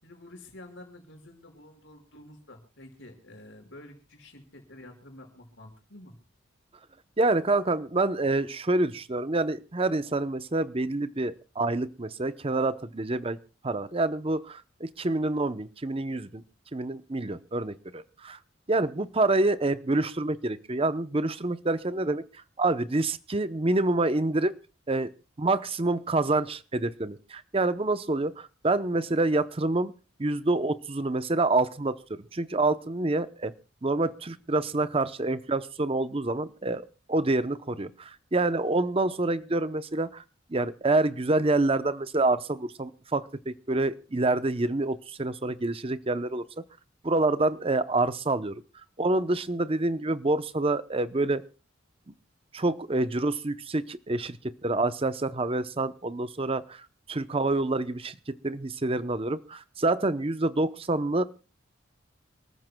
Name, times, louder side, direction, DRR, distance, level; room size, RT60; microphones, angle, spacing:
voice 1, 0.0-6.1, left 1 dB, 75° left, 4 dB, 5.4 m, -49 dB
voice 2, 7.2-13.4 13.6-16.4 16.7-18.4 18.7-22.2 22.6-24.5 24.9-25.1 25.4-29.9 30.2-33.5 33.8-40.2 40.5-46.4 47.0-48.6 49.0-51.4 52.5-56.8 57.1-61.2, right 2 dB, 30° right, 13 dB, 0.7 m, -27 dB
28.5 x 14.0 x 2.3 m, 0.33 s
head